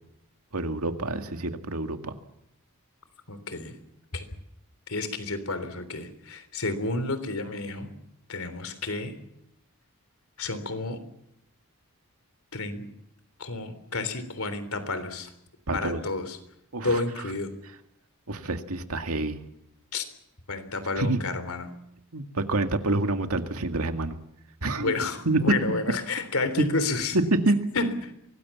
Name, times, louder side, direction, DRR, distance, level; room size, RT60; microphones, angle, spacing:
voice 1, 0.5-2.1 15.7-16.0 16.7-17.0 18.3-19.4 21.0-21.2 22.1-24.2 24.6-24.9 25.3-25.4 26.6-26.7 27.1-27.6, right 2 dB, 80° right, 6 dB, 2.1 m, -27 dB
voice 2, 3.3-3.8 4.1-4.2 4.9-7.9 8.3-9.2 10.4-11.0 12.5-12.8 13.4-15.3 15.7-16.4 16.8-17.5 19.9-20.0 20.5-21.7 24.8-27.2 27.7-28.1, left 3 dB, 75° left, 12 dB, 3.5 m, -30 dB
24.5 x 19.5 x 7.2 m, 0.78 s
head